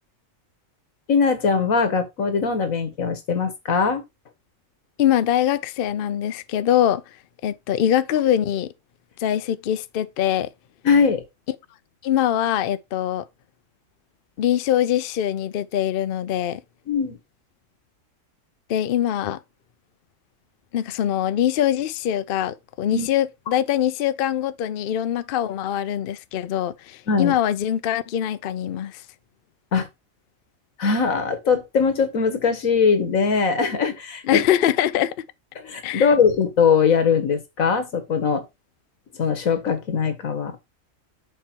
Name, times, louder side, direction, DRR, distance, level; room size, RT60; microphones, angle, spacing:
voice 1, 1.1-4.0 10.8-11.2 16.9-17.2 22.9-23.1 27.1-27.4 29.7-29.9 30.8-34.4 35.6-38.5 39.2-40.6, left 5 dB, 90° left, 1.8 m, -21 dB
voice 2, 5.0-7.2 7.4-8.7 9.2-10.5 12.0-13.3 14.4-16.6 18.7-19.4 20.7-29.0 34.2-35.3 35.8-36.1, left 11 dB, 55° left, 0.6 m, -23 dB
6.7 x 4.4 x 4.4 m
omnidirectional pair, 1.4 m